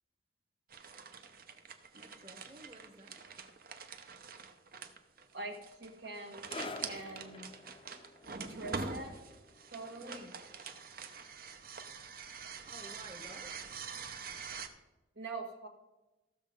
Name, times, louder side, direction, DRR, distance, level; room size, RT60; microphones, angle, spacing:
sound 1, 0.7-14.7, right 5 dB, 50° right, 0.8 m, -45 dB
voice 1, 1.9-3.2 10.0-10.4 12.6-13.7, right 1 dB, 35° right, 1 dB, 1.4 m, -53 dB
voice 2, 5.3-7.5 8.5-9.3 9.7-10.3 15.1-15.7, right 2 dB, 70° right, 2 dB, 1.7 m, -44 dB
sound 2, 6.4-13.4 13.7-13.9 14.7-14.8, left 3 dB, 30° left, 0.6 m, -51 dB
14.5 x 6.5 x 5.1 m, 1.1 s
head